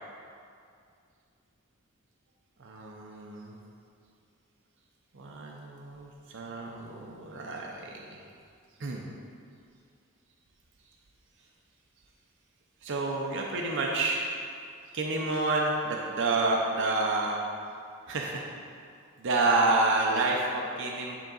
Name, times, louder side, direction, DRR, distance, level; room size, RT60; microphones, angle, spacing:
voice 1, 2.6-3.6 5.1-8.2 8.8-9.0 12.8-14.3 14.9-17.4 18.1-18.5 19.2-21.2, right 2 dB, 60° right, -1 dB, 0.6 m, -29 dB
10.0 x 3.9 x 3.9 m, 2.3 s
head